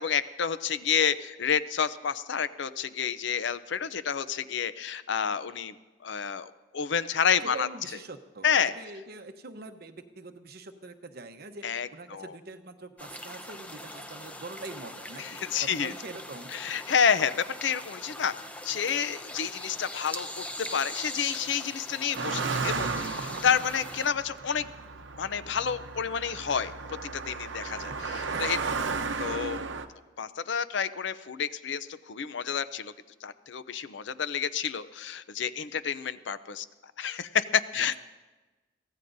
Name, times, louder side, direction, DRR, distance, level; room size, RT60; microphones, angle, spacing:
voice 1, 0.0-5.7 6.0-7.7 8.4-8.7 11.6-12.3 15.2-15.9 16.5-18.3 18.6-24.7 25.2-28.6 29.2-29.6 30.2-32.9 33.2-36.7 37.0-38.0, left 7 dB, 70° left, 14 dB, 0.6 m, -29 dB
voice 2, 7.4-16.5 23.2-23.6 28.3-28.8 37.7-38.0, right 3 dB, 55° right, 7 dB, 0.9 m, -44 dB
sound 1, 13.0-24.1, left 1 dB, 10° left, 0.8 m, -42 dB
Car passing by, 22.1-29.9, right 4 dB, 80° right, 0.8 m, -34 dB
23.0 x 16.5 x 2.7 m, 1.2 s
head